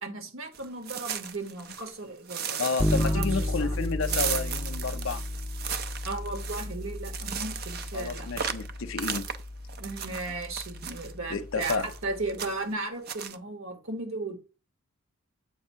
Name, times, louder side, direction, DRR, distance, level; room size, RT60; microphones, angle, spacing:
voice 1, 0.0-3.8 6.0-8.3 9.8-14.3, right 2 dB, 65° right, 1.5 m, -36 dB
sound 1, 0.5-1.9 2.3-11.1 11.6-12.0 12.3-12.7 13.1-13.4, right 8 dB, 45° right, 0.5 m, -36 dB
voice 2, 2.6-5.2 7.9-9.3 11.3-11.9, left 4 dB, 60° left, 0.6 m, -31 dB
Bass guitar, 2.8-12.5, left 1 dB, 5° left, 0.5 m, -33 dB
7.8 x 2.7 x 5.6 m
head